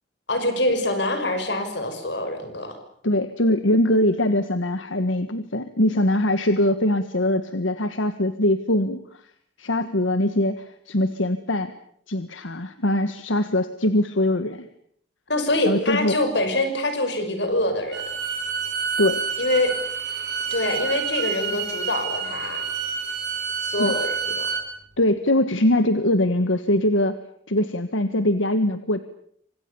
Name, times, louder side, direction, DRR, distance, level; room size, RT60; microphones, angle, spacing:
voice 1, 0.3-2.7 15.3-18.0 19.4-19.7 20.5-22.6 23.6-24.5, left 1 dB, 60° left, 8 dB, 6.0 m, -25 dB
voice 2, 3.0-9.0 9.6-11.7 12.1-14.7 15.6-16.1 19.0-19.2 23.8-23.9 25.0-27.2 27.5-29.0, left 1 dB, 85° left, 10 dB, 1.5 m, -22 dB
Bowed string instrument, 17.9-24.7, right 5 dB, 55° right, 5.9 m, -28 dB
28.0 x 26.0 x 7.0 m, 0.64 s
head